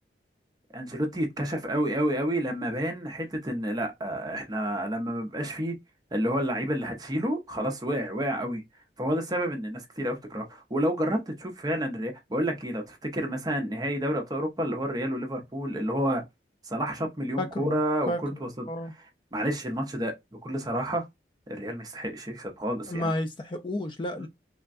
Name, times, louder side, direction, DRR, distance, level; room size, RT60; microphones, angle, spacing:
voice 1, 0.7-5.8 6.1-8.6 9.0-16.2 16.6-18.5 19.3-20.1 20.4-21.0 21.5-23.1, equal, 20° right, 0.6 m, -29 dB
voice 2, 17.4-17.8 18.1-18.2 18.7-18.9 22.9-24.3, left 1 dB, 25° left, 0.3 m, -31 dB
3.4 x 2.1 x 2.4 m
head